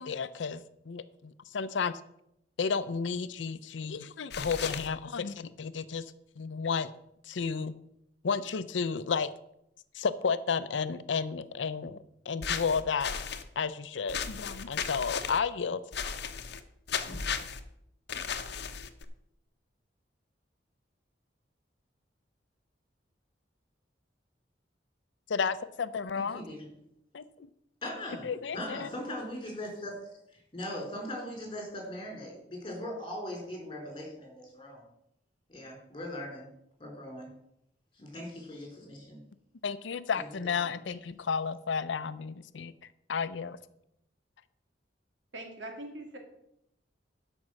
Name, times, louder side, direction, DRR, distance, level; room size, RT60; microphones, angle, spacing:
voice 1, 0.0-2.0 2.6-6.0 6.4-6.9 7.2-7.7 8.2-9.3 9.9-13.2 13.6-15.8 25.3-26.4 27.1-27.2 28.2-28.9 39.6-42.7 43.1-43.6, left 5 dB, 85° left, 14 dB, 0.5 m, -32 dB
sound 1, 4.3-4.9 12.4-13.4 14.1-15.4 15.9-16.6 16.9-17.6 18.1-19.0, left 6 dB, 65° left, 0.9 m, -35 dB
voice 2, 26.2-26.7 27.8-29.9 30.5-34.8 35.5-36.5 36.8-37.3 38.0-39.2 40.2-40.3, left 1 dB, 30° left, 0 dB, 4.2 m, -40 dB
voice 3, 45.3-46.2, right 1 dB, 90° right, 4 dB, 2.3 m, -42 dB
12.0 x 5.4 x 6.3 m, 0.79 s
head